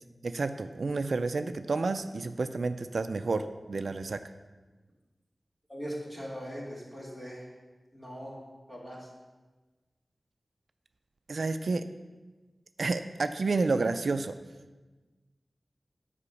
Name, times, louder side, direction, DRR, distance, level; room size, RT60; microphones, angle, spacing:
voice 1, 0.2-4.2 11.3-11.8 12.8-14.4, right 3 dB, 75° right, 9 dB, 0.4 m, -30 dB
voice 2, 5.7-7.4 7.9-8.4 8.7-9.1, equal, 15° left, -4 dB, 3.2 m, -40 dB
9.8 x 5.0 x 7.1 m, 1.2 s
wide cardioid pair, 90°, 0 cm